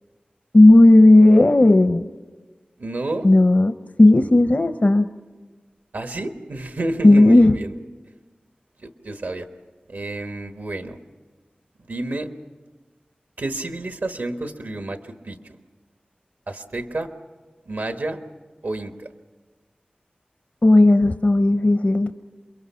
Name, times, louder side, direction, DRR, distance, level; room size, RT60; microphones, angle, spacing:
voice 1, 0.5-2.1 3.2-3.7 4.0-5.1 7.0-7.5 20.6-22.1, left 2 dB, 50° left, 9 dB, 0.7 m, -13 dB
voice 2, 2.8-3.3 5.9-7.7 8.8-9.5 9.9-11.0 11.8-12.3 13.4-15.6 16.5-17.1 17.6-18.2 18.6-19.1, right 2 dB, 85° right, 6 dB, 1.3 m, -30 dB
28.0 x 22.5 x 5.7 m, 1.3 s
wide cardioid pair, 40°, 3 cm